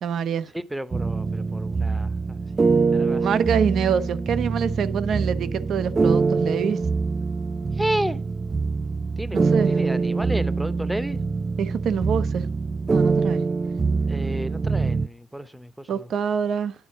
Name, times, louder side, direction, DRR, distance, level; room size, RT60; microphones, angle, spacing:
voice 1, 0.0-0.5 3.2-6.8 9.3-9.7 11.6-12.5 12.9-13.4 15.9-16.7, right 7 dB, 65° right, 0.7 m, -25 dB
voice 2, 0.5-2.4 2.9-3.3 7.7-8.2 9.2-9.4 9.7-11.2 14.1-16.1, right 1 dB, 5° right, 0.7 m, -31 dB
sound 1, 0.9-15.1, right 4 dB, 30° right, 0.3 m, -24 dB
10.5 x 4.1 x 6.6 m
cardioid pair, 90°, 0 cm